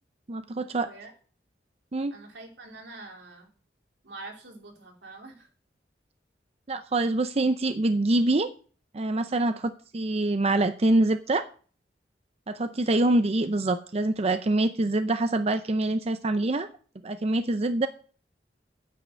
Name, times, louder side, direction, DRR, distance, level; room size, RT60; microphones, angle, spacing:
voice 1, 0.3-0.9 1.9-2.2 6.7-8.5 8.9-11.5 12.5-16.7 17.0-17.9, right 2 dB, 35° right, 10 dB, 0.6 m, -25 dB
voice 2, 2.1-3.5 4.0-5.5, right 3 dB, 90° right, 2 dB, 3.1 m, -45 dB
9.4 x 7.9 x 6.5 m, 0.42 s
head